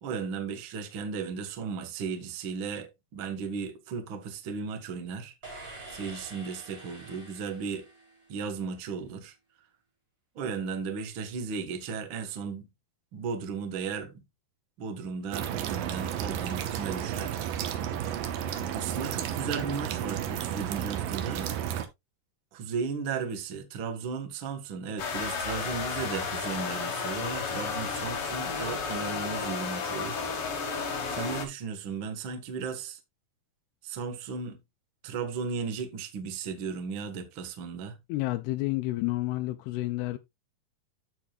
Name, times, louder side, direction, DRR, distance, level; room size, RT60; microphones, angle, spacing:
voice 1, 0.0-7.8 8.3-9.3 10.3-12.7 13.1-14.2 14.8-17.7 18.7-21.5 22.5-30.6 31.1-33.0 33.8-34.6 35.0-38.0, right 5 dB, 85° right, 1.1 m, -35 dB
sound 1, 5.4-8.6, right 2 dB, 25° right, 1.3 m, -47 dB
sound 2, 15.3-21.9, right 10 dB, 70° right, 2.4 m, -32 dB
sound 3, 25.0-31.5, left 5 dB, 60° left, 1.5 m, -32 dB
voice 2, 38.1-40.2, left 18 dB, 85° left, 2.6 m, -30 dB
14.0 x 4.8 x 2.3 m
omnidirectional pair, 4.7 m